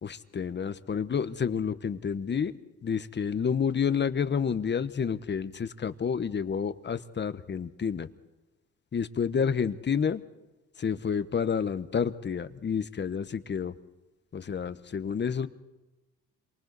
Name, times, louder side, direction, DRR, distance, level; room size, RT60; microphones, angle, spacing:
voice 1, 0.0-2.5 2.8-8.1 8.9-10.2 10.8-13.7 14.3-15.5, left 6 dB, 35° left, 12 dB, 1.1 m, -29 dB
27.5 x 24.5 x 4.1 m, 1.1 s
cardioid pair, 90°, 30 cm